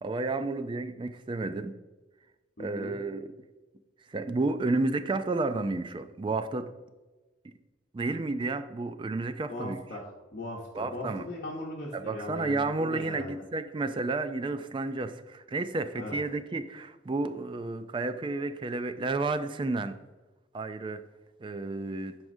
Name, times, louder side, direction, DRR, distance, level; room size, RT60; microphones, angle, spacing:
voice 1, 0.0-1.8 2.6-3.3 4.1-6.7 7.4-7.5 7.9-9.8 10.7-11.3 11.9-20.0 20.5-21.0 21.4-22.2, right 3 dB, 25° right, 10 dB, 0.3 m, -31 dB
voice 2, 2.6-2.9 9.5-13.3 16.0-16.2, left 1 dB, 45° left, -4 dB, 0.9 m, -39 dB
9.3 x 4.9 x 2.6 m, 1.2 s
head